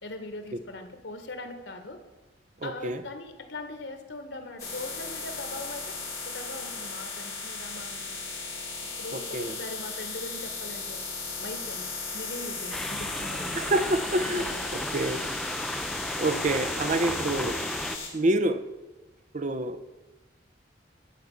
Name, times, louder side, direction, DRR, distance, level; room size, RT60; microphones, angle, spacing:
voice 1, 0.0-2.0 2.6-6.0 6.2-8.2 9.0-11.0 11.4-11.8 12.1-13.6 14.3-14.6, left 2 dB, 90° left, 7 dB, 1.5 m, -40 dB
voice 2, 2.6-3.0 9.1-9.5 13.5-14.5 14.7-15.5 16.2-17.6 18.1-18.6 19.3-19.8, right 1 dB, 45° right, 9 dB, 0.7 m, -27 dB
sound 1, 4.6-18.1, left 4 dB, 20° left, 3.6 m, -36 dB
sound 2, 12.7-18.0, equal, ahead, 0.4 m, -34 dB
11.0 x 4.8 x 8.2 m, 1.1 s
head